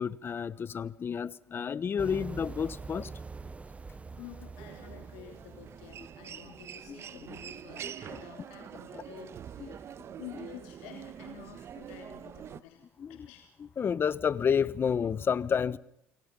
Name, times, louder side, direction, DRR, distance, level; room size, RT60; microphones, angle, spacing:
voice 1, 0.0-3.1 3.4-3.5 6.9-7.0 7.8-8.2 9.6-9.8 13.0-13.2 13.8-15.8, left 7 dB, 40° left, 1.1 m, -30 dB
sound 1, 2.0-6.7, right 4 dB, 20° right, 0.8 m, -45 dB
voice 2, 4.2-9.8 10.2-12.8 13.1-13.5, left 12 dB, 85° left, 3.0 m, -50 dB
Human voice, 4.5-12.6, right 9 dB, 50° right, 1.2 m, -45 dB
29.0 x 23.0 x 5.5 m
supercardioid pair, 80°, 6 cm